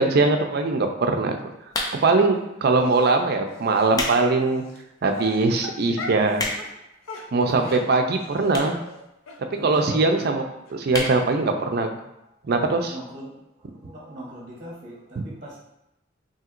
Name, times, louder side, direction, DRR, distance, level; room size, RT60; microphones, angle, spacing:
voice 1, 0.0-1.4 2.0-4.6 5.0-6.4 7.3-8.8 9.6-10.4 10.7-11.9 12.5-13.0 15.2-15.3, right 3 dB, 50° right, 5 dB, 0.4 m, -21 dB
sound 1, 1.7-2.2 3.0-3.2 3.7-4.2 4.6-4.7 5.4-5.5 5.7-5.8 6.0-6.8 7.6-7.7 8.5-8.8 9.1-9.2 9.4-9.5 9.7-9.8 10.2-10.4 10.9-11.2 11.6-11.7 11.8-11.9, left 2 dB, 20° left, 0.5 m, -29 dB
Dog, 2.8-3.1 3.7-3.9 4.6-4.8 5.1-6.3 6.6-6.7 7.0-8.6 8.8-9.0 9.3-9.4 9.7-9.8 10.2-10.3 10.7-10.8 11.0-11.1, left 3 dB, 90° left, 0.6 m, -37 dB
voice 2, 7.1-7.8 9.6-10.3 12.9-13.3 13.6-15.6, equal, 35° right, -5 dB, 0.9 m, -39 dB
5.7 x 2.8 x 2.5 m, 0.88 s
head